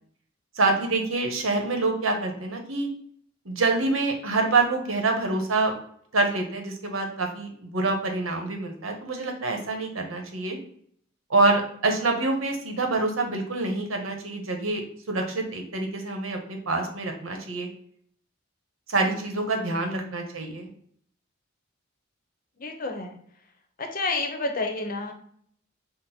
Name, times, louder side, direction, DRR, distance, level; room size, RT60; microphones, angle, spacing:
voice 1, 0.5-2.9 3.4-5.7 6.1-10.6 11.3-14.8 15.1-17.7 18.9-20.7, right 3 dB, 85° right, 3 dB, 1.0 m, -26 dB
voice 2, 19.6-20.1 22.6-23.2 23.8-25.1, left 3 dB, 45° left, 4 dB, 0.7 m, -30 dB
5.9 x 2.1 x 4.2 m, 0.63 s
head